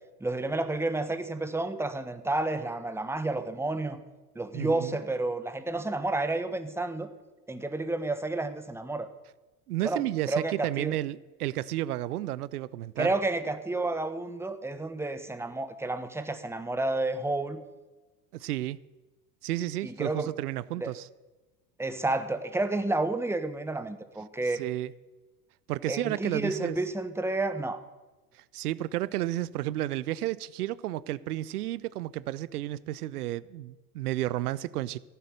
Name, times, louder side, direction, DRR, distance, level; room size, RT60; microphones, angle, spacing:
voice 1, 0.2-4.0 4.3-7.1 7.5-9.1 9.8-11.0 13.0-17.6 19.8-20.3 20.8-20.9 21.8-24.6 25.9-27.8, right 2 dB, 5° right, 1.2 m, -30 dB
voice 2, 4.5-5.0 9.7-13.1 18.3-18.8 19.4-21.1 24.6-24.9 25.7-26.8 28.3-35.0, right 15 dB, 85° right, 0.6 m, -32 dB
14.5 x 8.9 x 6.6 m
hypercardioid pair, 80°, 44 cm